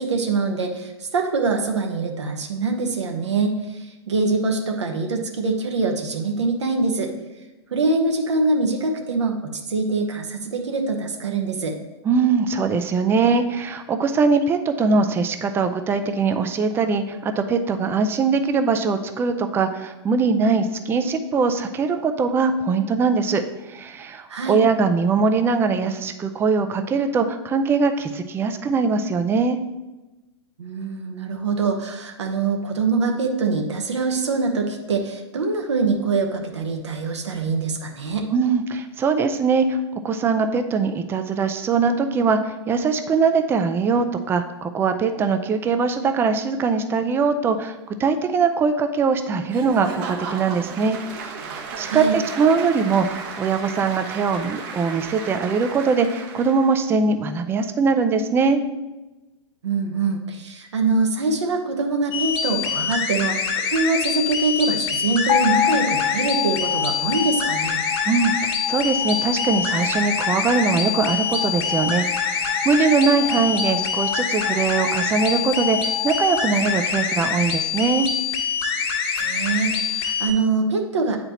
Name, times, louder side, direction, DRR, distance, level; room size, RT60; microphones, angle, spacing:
voice 1, 0.0-7.1 7.7-11.8 24.3-24.6 30.6-38.3 51.9-52.2 59.6-67.8 79.1-81.2, right 3 dB, 75° right, 3 dB, 1.0 m, -24 dB
voice 2, 12.0-29.6 38.3-39.8 40.0-51.5 51.8-58.6 68.1-78.1, right 4 dB, 15° right, 8 dB, 0.4 m, -21 dB
Applause / Crowd, 49.5-56.8, right 5 dB, 45° right, 0.9 m, -34 dB
sound 1, 62.1-80.3, left 6 dB, 55° left, 1.2 m, -25 dB
sound 2, 65.3-77.6, left 10 dB, 75° left, 1.1 m, -30 dB
8.7 x 4.2 x 2.9 m, 1.1 s
hypercardioid pair, 110°, 15 cm